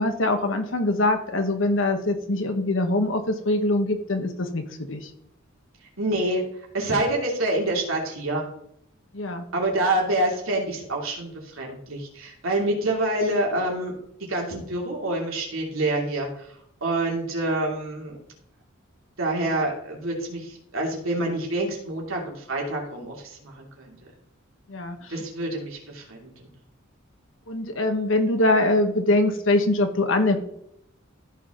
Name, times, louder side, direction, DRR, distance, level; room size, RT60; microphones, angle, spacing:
voice 1, 0.0-4.6 4.9-5.1 9.1-9.4 24.7-25.0 27.5-30.4, left 2 dB, 70° left, 6 dB, 1.2 m, -23 dB
voice 2, 6.0-6.4 6.7-8.5 9.5-13.9 14.3-16.5 16.8-18.2 19.2-23.9 25.1-26.3, right 1 dB, 85° right, -1 dB, 3.0 m, -27 dB
14.0 x 5.5 x 3.9 m, 0.73 s
head